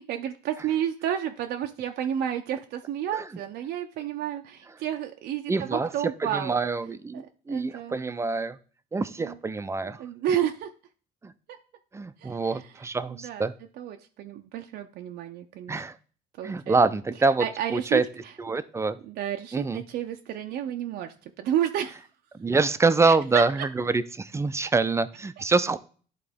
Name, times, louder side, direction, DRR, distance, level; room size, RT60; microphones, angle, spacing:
voice 1, 0.0-6.6 7.1-7.2 7.5-8.0 9.2-9.4 10.0-10.7 12.2-12.6 13.1-13.5 13.8-15.8 16.4-16.8 17.4-18.3 19.0-22.0 23.0-23.7, right 10 dB, 75° right, 5 dB, 0.5 m, -31 dB
voice 2, 5.5-5.9 6.2-8.6 8.9-10.0 11.2-11.3 11.9-13.5 15.7-16.0 16.4-18.0 18.4-19.0 19.5-19.8 22.3-25.8, right 3 dB, 15° right, 13 dB, 0.4 m, -25 dB
11.0 x 3.8 x 3.5 m, 0.42 s
cardioid pair, 110°, 17 cm